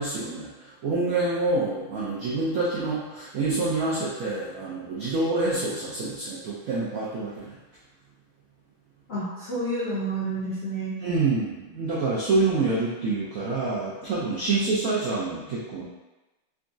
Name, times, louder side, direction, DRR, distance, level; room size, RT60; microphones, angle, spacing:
voice 1, 0.0-7.5 11.0-15.8, right 3 dB, 85° right, -7 dB, 0.7 m, -27 dB
voice 2, 9.1-11.0 14.5-14.8, right 1 dB, 70° left, -11 dB, 0.6 m, -30 dB
3.9 x 2.3 x 2.6 m, 1.1 s
omnidirectional pair, 2.3 m